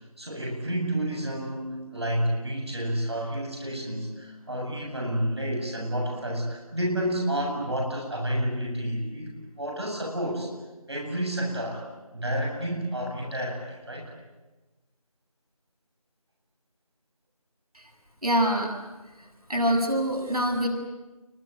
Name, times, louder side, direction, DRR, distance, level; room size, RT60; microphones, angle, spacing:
voice 1, 0.2-10.5 10.9-11.8 12.1-14.1, right 1 dB, 45° right, 0 dB, 7.9 m, -30 dB
voice 2, 18.2-18.7 19.5-20.7, equal, 85° right, 3 dB, 7.6 m, -24 dB
28.0 x 24.5 x 8.7 m, 1.2 s
figure-of-eight pair, 170°, 19 cm